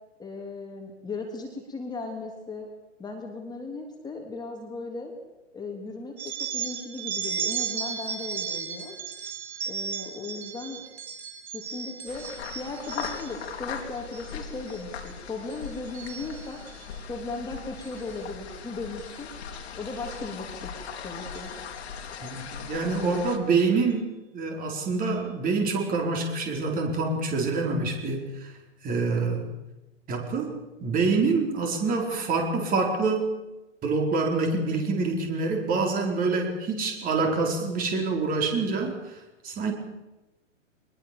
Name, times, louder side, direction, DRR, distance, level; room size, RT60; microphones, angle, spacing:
voice 1, 0.2-2.7 3.0-5.1 5.5-8.9 9.7-10.8 11.5-12.2 12.5-16.6 17.1-19.3 19.8-20.7 21.0-21.5, left 3 dB, 10° left, 1 dB, 3.5 m, -37 dB
sound 1, 6.2-13.5 14.0-14.4 14.7-15.1 15.5-16.8 17.8-18.0 19.0-19.2 20.1-20.2 20.6-20.7 21.2-21.5, right 7 dB, 60° right, 5.2 m, -35 dB
sound 2, 12.1-23.4, left 6 dB, 60° left, 3.7 m, -39 dB
voice 2, 22.2-28.5 28.8-29.5 30.1-30.5 30.8-33.3 33.8-39.0 39.4-39.7, right 4 dB, 20° right, 2 dB, 4.6 m, -26 dB
23.5 x 21.0 x 7.0 m, 1.0 s
figure-of-eight pair, 125°, 38 cm